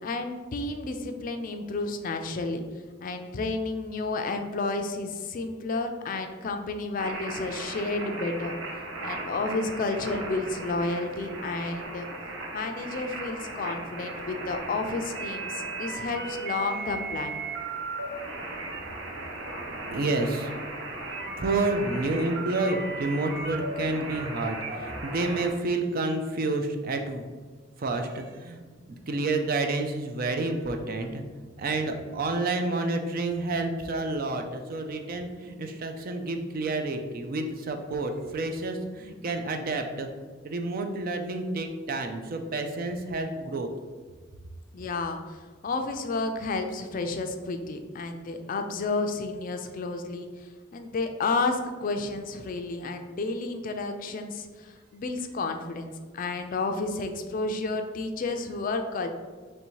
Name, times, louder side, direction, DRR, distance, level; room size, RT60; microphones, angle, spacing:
voice 1, 0.0-2.6 3.0-8.5 9.0-12.1 12.5-17.5 44.7-59.1, left 3 dB, 45° left, 6 dB, 0.4 m, -31 dB
sound 1, 7.0-25.5, right 2 dB, 85° right, 0.7 m, -36 dB
voice 2, 19.9-20.5 21.4-24.6 24.8-27.2 27.8-28.6 29.1-31.2 31.6-40.1 40.4-43.7, right 2 dB, 50° right, 5 dB, 0.4 m, -29 dB
3.2 x 2.7 x 4.5 m, 1.4 s
head